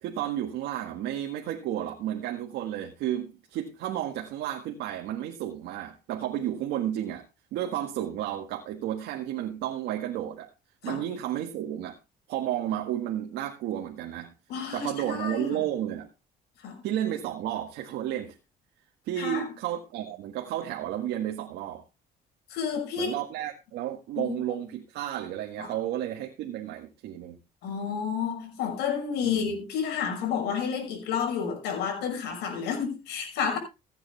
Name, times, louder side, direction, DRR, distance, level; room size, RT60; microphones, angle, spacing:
voice 1, 0.0-7.3 7.5-10.5 10.8-12.0 12.3-14.3 14.7-16.1 16.8-18.4 19.1-21.8 23.0-27.4 29.2-29.5, right 11 dB, 85° right, 1.7 m, -32 dB
voice 2, 14.5-15.6 16.6-16.8 19.2-19.5 22.5-23.1 24.2-24.4 25.6-25.7 27.6-33.6, left 7 dB, 80° left, 6.1 m, -30 dB
15.5 x 9.4 x 3.4 m
cardioid pair, 110°, 17 cm